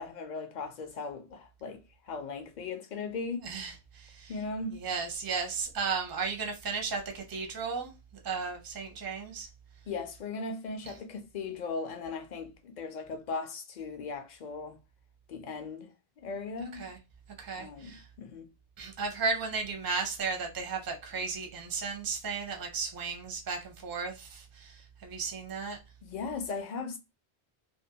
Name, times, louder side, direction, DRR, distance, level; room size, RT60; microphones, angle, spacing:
voice 1, 0.0-3.5 4.3-4.8 9.9-14.8 15.3-15.9 16.2-16.9 17.6-18.5 26.0-27.0, left 4 dB, 55° left, 0.6 m, -38 dB
voice 2, 3.4-4.3 4.7-7.9 8.2-9.5 16.7-17.0 17.4-18.1 18.8-25.8, right 5 dB, 30° right, 0.5 m, -35 dB
2.5 x 2.2 x 2.7 m
omnidirectional pair, 1.1 m